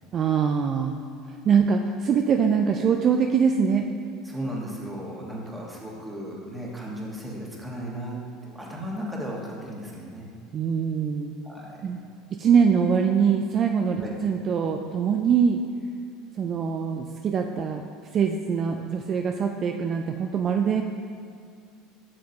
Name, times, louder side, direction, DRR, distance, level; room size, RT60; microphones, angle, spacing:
voice 1, 0.1-1.0 1.5-3.9 10.5-11.4 11.8-12.0 12.3-15.6 16.4-17.8 18.1-20.8, right 6 dB, 40° right, 4 dB, 0.3 m, -23 dB
voice 2, 4.2-10.3 11.4-11.9 14.0-14.1, right 1 dB, 10° right, -3 dB, 1.5 m, -35 dB
7.5 x 6.3 x 2.9 m, 2.2 s
supercardioid pair, 95°, 0 cm